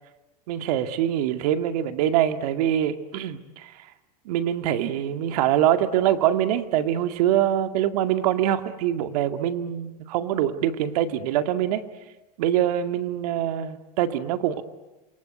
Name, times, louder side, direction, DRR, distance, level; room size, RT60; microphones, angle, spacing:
voice 1, 0.5-3.7 4.3-11.8 12.4-14.6, right 11 dB, 70° right, 9 dB, 2.2 m, -24 dB
28.0 x 22.5 x 9.4 m, 1.1 s
supercardioid pair, 145°, 20 cm